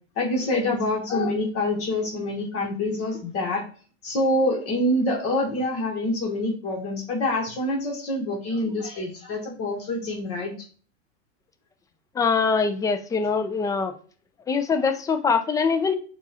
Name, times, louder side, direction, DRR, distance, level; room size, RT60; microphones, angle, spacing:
voice 1, 0.2-3.6 4.0-10.5, left 1 dB, 40° left, 0 dB, 1.4 m, -26 dB
voice 2, 12.2-13.9 14.5-15.9, left 5 dB, 10° left, 8 dB, 0.4 m, -23 dB
4.6 x 2.5 x 4.1 m, 0.40 s
hypercardioid pair, 105°, 37 cm